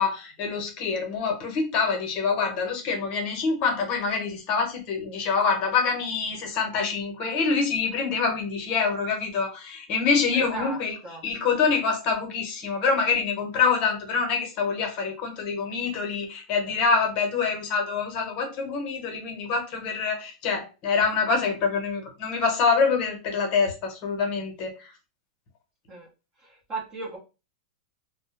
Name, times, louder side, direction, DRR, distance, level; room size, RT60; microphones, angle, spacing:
voice 1, 0.0-11.0 11.2-24.9, left 5 dB, 40° left, 2 dB, 0.9 m, -26 dB
voice 2, 10.3-10.8 11.0-11.2 25.9-26.1 26.4-27.2, right 2 dB, 25° right, 0 dB, 0.7 m, -36 dB
2.1 x 2.0 x 2.9 m, 0.30 s
supercardioid pair, 145°, 3 cm